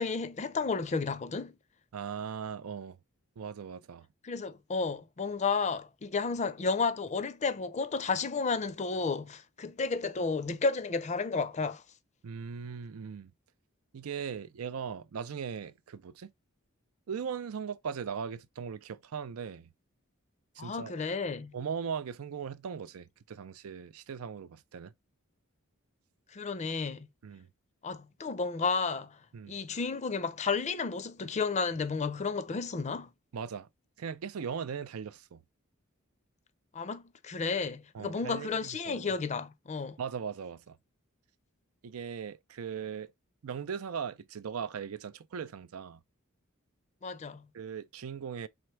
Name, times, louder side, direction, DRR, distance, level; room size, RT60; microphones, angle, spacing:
voice 1, 0.0-1.6 4.2-11.8 20.6-21.6 26.3-27.1 27.8-29.2 29.5-33.1 36.7-40.0 47.0-47.5, left 4 dB, 35° left, 0.5 m, -32 dB
voice 2, 1.9-3.0 3.4-4.1 12.2-13.3 13.9-16.3 17.1-19.7 20.6-20.9 21.5-24.9 27.2-27.5 29.3-29.5 33.3-33.7 34.0-35.4 37.9-39.2 40.0-40.8 41.8-43.1 43.4-46.0 47.5-48.5, right 7 dB, 85° right, 0.5 m, -39 dB
4.3 x 3.4 x 3.2 m
head